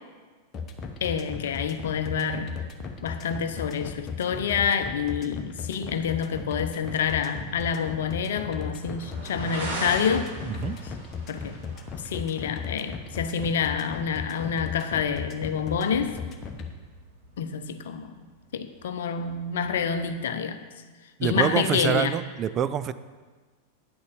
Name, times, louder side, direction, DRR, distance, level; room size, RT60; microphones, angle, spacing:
sound 1, 0.5-16.7, left 5 dB, 30° left, 1.1 m, -36 dB
voice 1, 1.0-2.6 3.0-10.4 11.3-11.6 11.9-16.2 17.4-18.3 18.5-20.6 21.2-22.2, left 7 dB, 60° left, 0.7 m, -28 dB
sound 2, 5.5-20.1, right 2 dB, 65° right, 2.9 m, -43 dB
voice 2, 21.2-22.9, right 8 dB, 30° right, 0.4 m, -26 dB
9.7 x 6.5 x 7.0 m
figure-of-eight pair, 90°, 0 cm